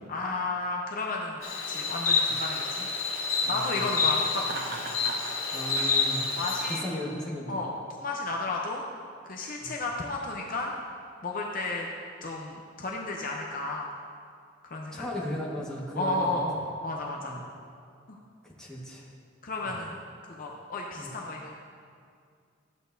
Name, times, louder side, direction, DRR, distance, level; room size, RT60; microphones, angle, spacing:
voice 1, 0.1-2.9 3.5-4.6 6.4-6.8 7.5-8.8 9.2-10.7 11.2-11.9 12.2-13.9 14.7-15.1 15.9-17.4 18.1-18.2 19.4-21.6, left 2 dB, 45° left, -1 dB, 0.6 m, -33 dB
Insect, 1.4-6.8, left 4 dB, 80° left, 1.5 m, -28 dB
voice 2, 3.4-3.9 5.5-6.3 6.7-7.6 9.6-9.7 14.9-16.4 17.2-17.4 18.4-19.0 19.6-19.8 21.0-21.1, left 1 dB, 5° left, -6 dB, 1.4 m, -36 dB
Laughter, 4.4-5.4, right 2 dB, 50° right, 0.8 m, -37 dB
13.0 x 8.4 x 2.6 m, 2.2 s
head